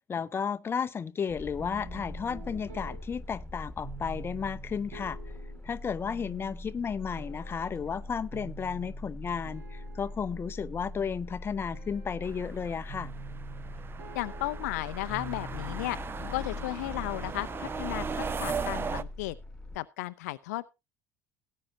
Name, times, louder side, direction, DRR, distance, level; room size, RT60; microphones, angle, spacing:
voice 1, 0.1-5.2 5.6-13.1, left 6 dB, 25° left, 0.6 m, -33 dB
sound 1, 1.3-19.8, left 2 dB, 5° left, 1.5 m, -42 dB
sound 2, 1.6-19.6, right 5 dB, 65° right, 4.5 m, -49 dB
sound 3, 12.2-19.0, right 6 dB, 25° right, 0.6 m, -38 dB
voice 2, 14.1-16.0 16.3-19.4 19.7-20.7, left 19 dB, 65° left, 0.5 m, -34 dB
17.5 x 9.5 x 2.8 m
figure-of-eight pair, 65°, 10 cm